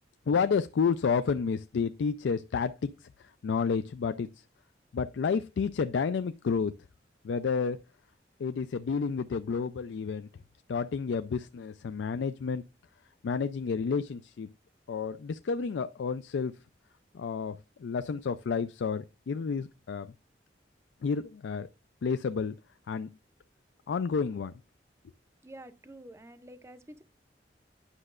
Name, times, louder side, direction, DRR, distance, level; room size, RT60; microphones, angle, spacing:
voice 1, 0.3-4.3 4.9-6.7 7.2-7.8 8.4-10.3 10.7-12.6 13.2-14.5 14.9-16.5 17.1-20.1 21.0-21.7 22.0-22.5 22.9-23.1 23.9-24.5, left 5 dB, 90° left, 0.4 m, -30 dB
voice 2, 25.4-27.0, right 1 dB, 15° right, 0.5 m, -48 dB
9.8 x 6.4 x 2.4 m
head